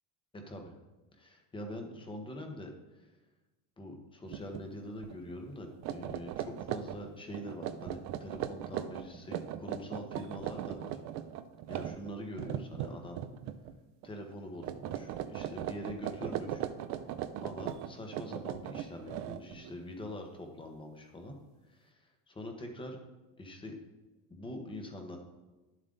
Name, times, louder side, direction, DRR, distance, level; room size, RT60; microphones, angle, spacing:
voice 1, 0.3-0.7 1.1-3.1 3.8-11.0 11.7-13.2 14.0-16.6 17.4-21.3 21.7-23.0 23.4-23.8 24.3-25.2, left 1 dB, 10° left, 3 dB, 1.2 m, -44 dB
sound 1, 4.3-4.6 5.0-5.2 5.7-13.7 14.0-14.4 14.6-19.7, right 11 dB, 40° right, 0.5 m, -39 dB
11.5 x 7.5 x 3.9 m, 1.1 s
cardioid pair, 160°, 44 cm